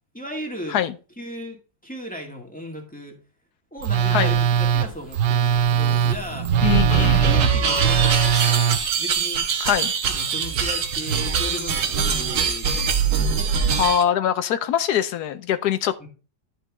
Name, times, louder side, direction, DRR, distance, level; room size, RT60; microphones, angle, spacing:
voice 1, 0.1-0.8 1.2-3.2 3.7-6.6 6.9-9.5 10.1-13.3 16.0-16.1, left 1 dB, 5° left, 1.8 m, -36 dB
Telephone, 3.8-8.8, right 8 dB, 80° right, 1.4 m, -20 dB
sound 1, 4.1-7.8, right 7 dB, 25° right, 1.9 m, -34 dB
sound 2, 6.5-14.0, right 6 dB, 60° right, 1.5 m, -23 dB
voice 2, 6.6-7.2 9.6-9.9 13.7-16.1, left 10 dB, 70° left, 1.1 m, -23 dB
11.5 x 5.2 x 3.5 m
omnidirectional pair, 2.0 m